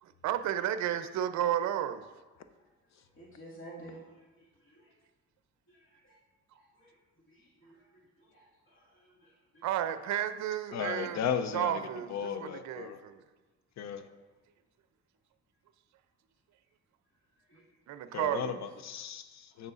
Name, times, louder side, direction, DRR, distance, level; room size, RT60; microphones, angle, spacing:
voice 1, 0.0-2.0 9.6-11.2 11.5-13.2 17.9-18.6, right 11 dB, 70° right, 10 dB, 0.5 m, -32 dB
voice 2, 3.2-4.9 5.7-5.8 6.0-6.2 6.5-6.9 7.3-9.6 17.5-17.6, right 1 dB, 40° left, -6 dB, 2.1 m, -53 dB
voice 3, 10.7-11.8 12.1-13.0 13.8-14.0 18.1-19.7, left 8 dB, 60° left, 10 dB, 0.6 m, -35 dB
8.6 x 6.6 x 2.5 m, 1.2 s
cardioid pair, 90°, 30 cm